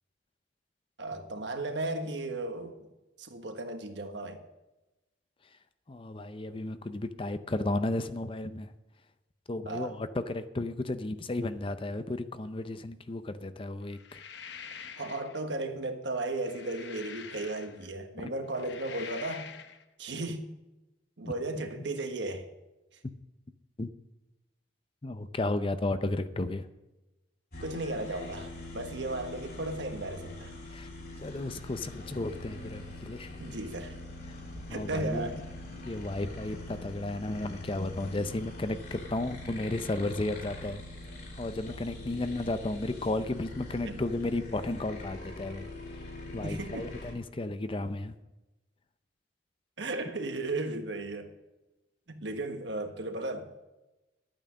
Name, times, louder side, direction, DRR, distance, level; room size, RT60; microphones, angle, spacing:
voice 1, 1.0-2.7 3.2-4.4 9.6-10.0 15.0-19.5 20.0-20.5 21.2-22.5 27.6-30.5 33.4-34.0 34.7-35.4 43.8-44.0 46.4-46.9 49.8-51.3 52.1-53.7, right 2 dB, 70° right, 1.4 m, -35 dB
voice 2, 5.9-8.7 9.5-14.2 18.2-18.3 21.2-21.6 23.8-23.9 25.0-26.7 30.7-30.9 31.2-33.4 34.7-35.3 35.9-40.8 41.4-45.7 46.3-48.1, left 2 dB, 30° left, 0.6 m, -33 dB
sound 1, 13.9-15.4 16.2-17.9 18.4-19.8, left 7 dB, 65° left, 0.9 m, -46 dB
sound 2, 27.5-47.1, left 2 dB, 50° left, 3.5 m, -43 dB
12.0 x 8.9 x 6.2 m
head